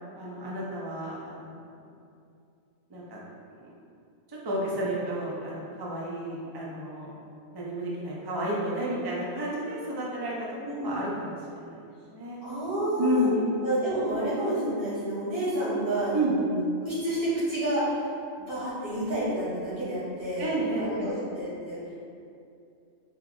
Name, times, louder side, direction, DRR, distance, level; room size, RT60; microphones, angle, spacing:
voice 1, 0.1-1.6 2.9-3.2 3.6-3.7 4.3-7.1 7.5-11.3 11.6-11.8 12.1-12.4 13.0-13.6 16.1-16.3 20.4-21.1, right 1 dB, 35° right, -5 dB, 0.3 m, -31 dB
voice 2, 10.6-11.0 12.4-13.3 13.6-16.6 16.8-17.8 18.4-20.5 20.8-22.0, right 1 dB, 90° right, -10 dB, 2.0 m, -29 dB
4.5 x 2.3 x 3.7 m, 2.5 s
omnidirectional pair, 1.4 m